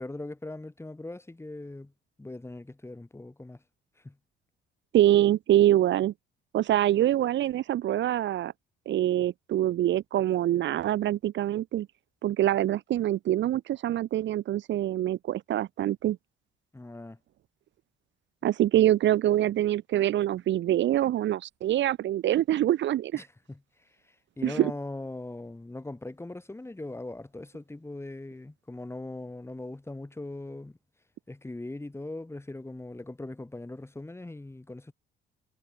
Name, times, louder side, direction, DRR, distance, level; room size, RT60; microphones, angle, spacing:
voice 1, 0.0-1.9 2.2-3.6 4.0-4.2 16.7-17.2 23.1-30.8 31.3-34.9, left 2 dB, 10° left, 7.6 m, -40 dB
voice 2, 4.9-6.1 6.5-8.5 8.9-11.9 12.2-16.2 18.4-23.2 24.4-24.7, right 13 dB, 65° right, 1.1 m, -25 dB
cardioid pair, 90°, 21 cm